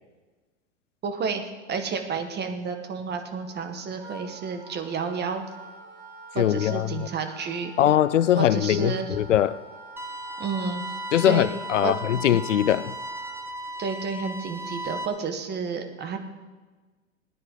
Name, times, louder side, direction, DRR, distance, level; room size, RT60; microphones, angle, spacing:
voice 1, 1.0-5.4 6.3-7.7 8.4-9.2 10.4-10.8 11.2-11.5 11.8-11.9 13.8-16.2, right 5 dB, 30° right, 1.7 m, -31 dB
Wind instrument woodwind instrument, 3.5-13.5, right 2 dB, 55° right, 2.8 m, -46 dB
voice 2, 6.4-7.1 7.8-9.6 11.1-13.0, left 11 dB, 85° left, 0.5 m, -22 dB
sound 1, 10.0-15.1, right 1 dB, 5° right, 1.4 m, -36 dB
19.5 x 10.5 x 3.9 m
hypercardioid pair, 90°, 36 cm